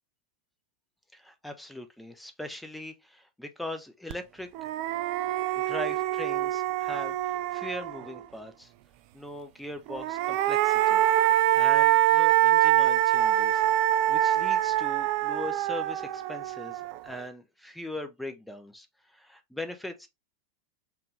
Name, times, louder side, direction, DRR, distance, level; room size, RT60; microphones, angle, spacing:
voice 1, 1.1-4.7 5.6-8.7 9.1-11.0 11.5-13.6 14.1-20.1, left 1 dB, 5° left, 0.7 m, -40 dB
sound 1, 4.1-4.2 4.5-8.2 9.9-17.1, right 14 dB, 45° right, 0.3 m, -25 dB
4.5 x 2.6 x 3.1 m
figure-of-eight pair, 90°, 0 cm